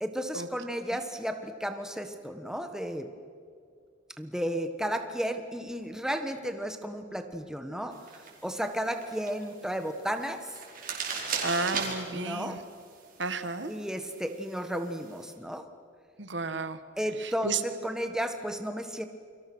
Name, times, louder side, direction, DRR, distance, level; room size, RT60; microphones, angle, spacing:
voice 1, 0.0-3.1 4.2-8.0 8.4-10.5 12.1-12.6 13.7-15.6 17.0-19.0, equal, 5° right, 7 dB, 1.3 m, -33 dB
sound 1, 7.9-15.3, right 5 dB, 45° right, 5.0 m, -40 dB
voice 2, 11.4-12.6 13.2-13.7 16.2-16.8 17.2-17.6, right 4 dB, 65° right, 10 dB, 1.4 m, -32 dB
29.5 x 25.0 x 6.3 m, 2.3 s
head